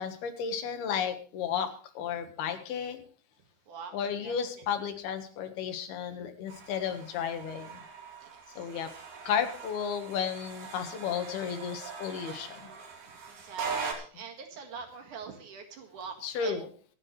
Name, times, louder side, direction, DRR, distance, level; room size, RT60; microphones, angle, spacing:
voice 1, 0.0-1.7 2.0-3.0 3.9-7.8 8.6-8.9 9.2-12.7 16.2-16.7, left 7 dB, 85° left, 7 dB, 3.5 m, -33 dB
voice 2, 4.2-4.9 6.2-6.3 6.5-6.6 8.2-8.7 13.0-16.6, right 5 dB, 60° right, 4 dB, 3.1 m, -45 dB
sound 1, 6.5-13.9, right 5 dB, 85° right, 4.5 m, -41 dB
25.0 x 8.6 x 3.2 m, 0.42 s
omnidirectional pair, 4.4 m